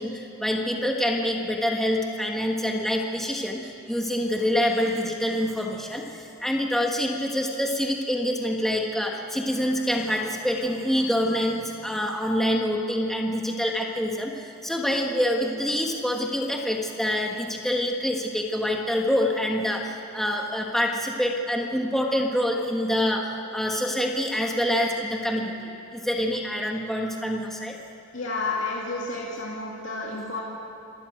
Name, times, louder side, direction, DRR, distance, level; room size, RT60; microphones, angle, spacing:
voice 1, 0.0-23.2 23.5-27.8, equal, ahead, 0 dB, 1.4 m, -26 dB
voice 2, 28.1-30.4, left 3 dB, 65° left, -3 dB, 2.5 m, -30 dB
26.5 x 13.0 x 9.2 m, 2.7 s
head